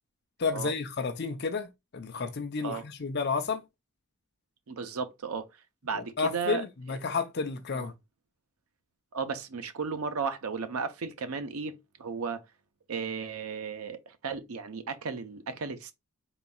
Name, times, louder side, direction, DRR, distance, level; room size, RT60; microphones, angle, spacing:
voice 1, 0.4-3.6 5.9-7.9, left 4 dB, 50° left, 0.6 m, -31 dB
voice 2, 4.7-5.5 5.8-6.6 6.9-7.0 7.7-7.9 9.1-12.4 12.9-15.9, right 5 dB, 85° right, 0.7 m, -35 dB
4.1 x 3.9 x 2.3 m
head